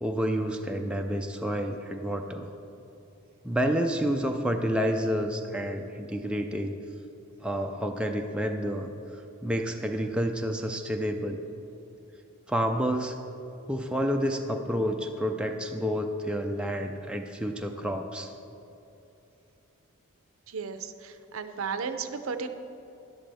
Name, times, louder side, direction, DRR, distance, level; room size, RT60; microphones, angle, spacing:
voice 1, 0.0-2.5 3.4-6.7 7.4-8.9 9.4-11.4 12.5-13.2 13.7-18.3, equal, 5° right, 3 dB, 0.4 m, -29 dB
voice 2, 20.5-22.5, right 5 dB, 65° right, 9 dB, 0.6 m, -34 dB
11.5 x 11.0 x 3.5 m, 2.8 s
head